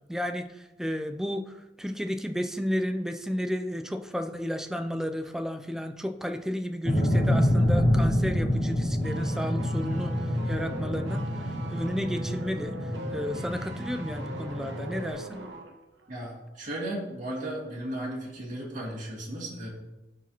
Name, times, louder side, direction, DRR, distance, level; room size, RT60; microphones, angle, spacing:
voice 1, 0.0-15.4, equal, 5° right, 6 dB, 0.4 m, -33 dB
sound 1, 6.8-15.1, equal, 35° left, 2.4 m, -27 dB
sound 2, 9.0-15.7 16.0-16.1, right 1 dB, 80° right, 1.1 m, -41 dB
voice 2, 16.1-19.7, right 1 dB, 45° right, -5 dB, 2.4 m, -35 dB
13.5 x 4.8 x 2.9 m, 1.0 s
head